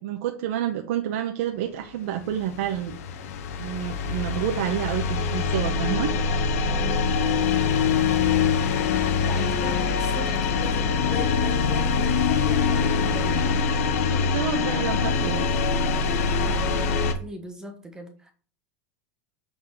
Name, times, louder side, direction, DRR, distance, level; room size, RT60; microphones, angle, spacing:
voice 1, 0.0-3.0 3.6-6.1 13.9-15.5, right 11 dB, 70° right, 4 dB, 0.9 m, -29 dB
sound 1, 2.2-17.1, left 5 dB, 80° left, 0.9 m, -24 dB
voice 2, 6.7-7.1 9.2-13.5 16.4-18.3, equal, 10° right, 4 dB, 1.1 m, -39 dB
8.1 x 4.1 x 4.8 m, 0.42 s
supercardioid pair, 145°, 8 cm